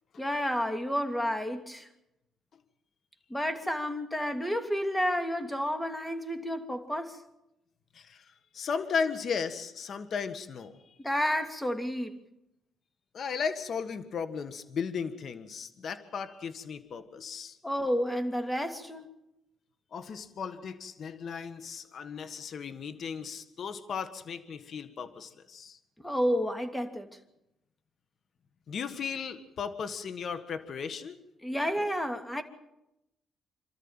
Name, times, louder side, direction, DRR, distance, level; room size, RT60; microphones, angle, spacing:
voice 1, 0.2-1.9 3.3-7.2 11.0-12.1 17.6-19.1 26.0-27.1 31.4-32.4, equal, 10° left, 7 dB, 2.8 m, -30 dB
voice 2, 7.9-8.3 8.5-10.7 13.1-17.6 19.9-25.8 28.7-31.2, left 6 dB, 55° left, 10 dB, 1.7 m, -35 dB
27.5 x 13.5 x 9.0 m, 0.89 s
cardioid pair, 90°, 0 cm